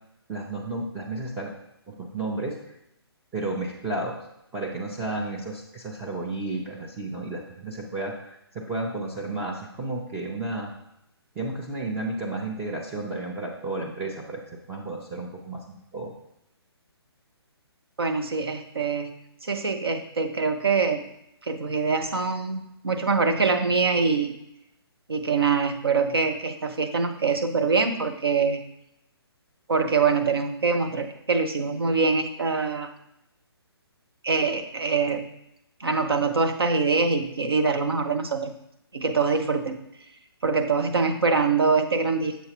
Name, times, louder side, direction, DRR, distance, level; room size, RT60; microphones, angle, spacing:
voice 1, 0.3-1.5 1.9-2.6 3.3-4.2 4.5-10.7 11.4-16.1, right 2 dB, 10° right, -3 dB, 0.6 m, -32 dB
voice 2, 18.0-19.1 19.4-21.0 21.4-24.4 25.1-28.6 29.7-32.9 34.2-35.3 35.8-38.5 38.9-39.8 40.4-42.4, right 4 dB, 65° right, 6 dB, 0.9 m, -24 dB
7.2 x 6.5 x 2.9 m, 0.81 s
figure-of-eight pair, 135°, 14 cm